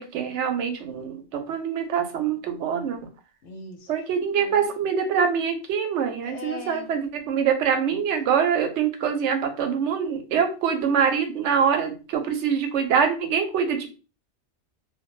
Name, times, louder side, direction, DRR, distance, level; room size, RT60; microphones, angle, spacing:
voice 1, 0.0-3.0 3.9-13.9, right 7 dB, 85° right, 6 dB, 0.9 m, -24 dB
voice 2, 3.4-3.9 4.4-4.7 6.2-6.9, left 3 dB, 80° left, 5 dB, 0.9 m, -39 dB
2.2 x 2.1 x 2.9 m, 0.34 s
omnidirectional pair, 1.2 m